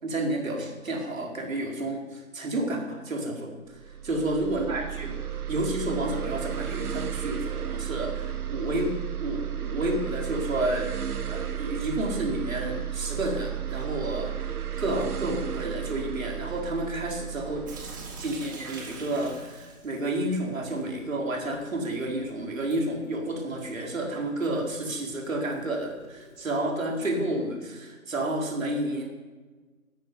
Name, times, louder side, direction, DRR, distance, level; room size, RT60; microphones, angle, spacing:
voice 1, 0.0-5.1 5.5-8.9 9.2-17.6 18.2-29.0, right 1 dB, 65° right, 0 dB, 4.7 m, -30 dB
sound 1, 3.7-19.2, right 10 dB, 90° right, 1.3 m, -34 dB
Sink (filling or washing) / Drip, 17.7-26.6, right 3 dB, 15° right, 1.4 m, -47 dB
13.5 x 11.0 x 9.8 m, 1.3 s
hypercardioid pair, 170°, 44 cm